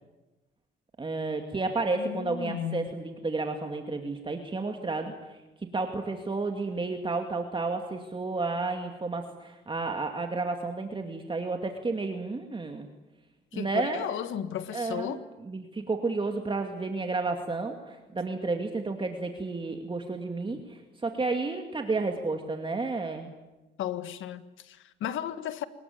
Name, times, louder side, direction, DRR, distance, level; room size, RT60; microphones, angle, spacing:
voice 1, 1.0-5.4 5.7-12.9 13.5-14.0 14.7-23.3, right 3 dB, 25° right, 4 dB, 2.4 m, -31 dB
voice 2, 1.9-3.0 13.5-15.2 20.4-20.6 23.8-25.6, left 10 dB, 80° left, 12 dB, 1.6 m, -35 dB
25.0 x 21.0 x 9.5 m, 1.1 s
cardioid pair, 90°, 20 cm